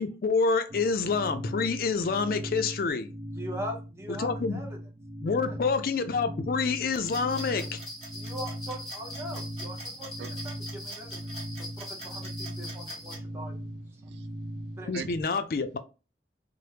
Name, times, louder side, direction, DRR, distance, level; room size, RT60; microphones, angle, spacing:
voice 1, 0.0-3.1 4.1-4.6 5.2-7.8 14.9-15.8, left 4 dB, 55° left, 0.4 m, -27 dB
sound 1, 0.7-15.2, equal, 55° right, 0.7 m, -39 dB
voice 2, 3.4-4.7 8.1-11.3 11.6-13.7 14.7-14.9, equal, 15° right, 0.7 m, -41 dB
sound 2, 6.9-13.2, right 2 dB, 35° right, 1.2 m, -46 dB
sound 3, 7.0-13.2, left 1 dB, ahead, 1.2 m, -42 dB
voice 3, 10.2-10.5 11.4-12.0 12.4-13.4 13.7-15.1, right 6 dB, 70° right, 0.3 m, -47 dB
3.3 x 2.0 x 2.8 m
head